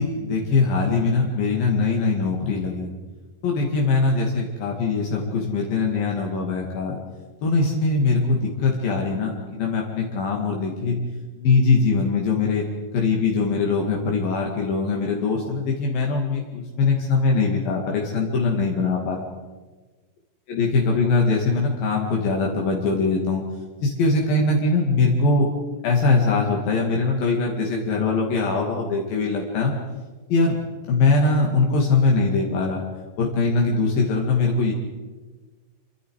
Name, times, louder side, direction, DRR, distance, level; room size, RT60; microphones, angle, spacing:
voice 1, 0.0-2.9 3.4-7.0 7.4-11.0 11.4-12.6 12.9-19.3 20.5-23.4 23.8-25.5 25.8-29.7 30.3-30.6 30.9-32.8 33.2-34.7, left 3 dB, 75° left, -1 dB, 4.0 m, -22 dB
27.5 x 25.0 x 4.8 m, 1.3 s
omnidirectional pair, 4.2 m